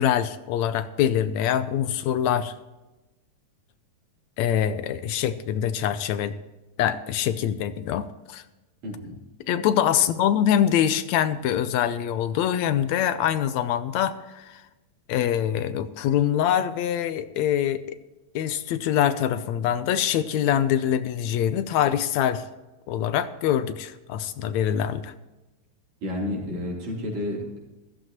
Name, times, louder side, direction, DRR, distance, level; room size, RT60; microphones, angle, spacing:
voice 1, 0.0-2.5 4.4-6.3 6.8-8.4 9.5-14.6 15.1-18.0 18.4-22.4 22.9-25.1, left 10 dB, 80° left, 11 dB, 1.9 m, -24 dB
voice 2, 8.8-9.2 26.0-27.6, left 1 dB, 70° right, -3 dB, 4.9 m, -31 dB
15.5 x 14.0 x 3.0 m, 1.1 s
omnidirectional pair, 3.3 m